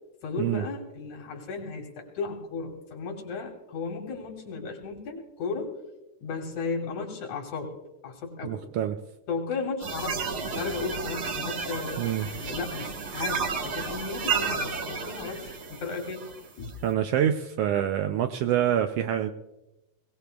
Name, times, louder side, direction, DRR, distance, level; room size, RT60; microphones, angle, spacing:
voice 1, 0.2-5.8 6.2-7.8 8.0-8.6 9.3-16.2 16.6-16.7, left 4 dB, 80° left, 2 dB, 4.1 m, -35 dB
voice 2, 8.4-9.0 12.0-12.3 16.8-19.3, right 10 dB, 85° right, 7 dB, 1.3 m, -26 dB
sound 1, 9.8-16.7, right 5 dB, 55° right, 1.2 m, -32 dB
21.5 x 17.5 x 2.3 m, 0.98 s
omnidirectional pair, 3.3 m